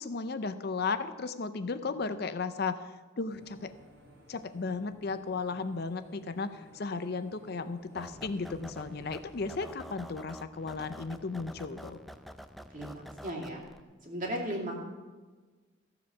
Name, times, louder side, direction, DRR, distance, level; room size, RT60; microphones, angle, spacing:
voice 1, 0.0-2.8 3.2-3.7 4.3-12.0, left 4 dB, 50° left, 11 dB, 0.5 m, -35 dB
sound 1, 3.3-9.9, right 1 dB, 65° right, 2.9 m, -56 dB
sound 2, 8.0-13.8, equal, ahead, 0.4 m, -48 dB
voice 2, 12.7-13.6 14.0-14.8, equal, 40° right, -1 dB, 2.4 m, -36 dB
14.5 x 7.4 x 6.1 m, 1.3 s
head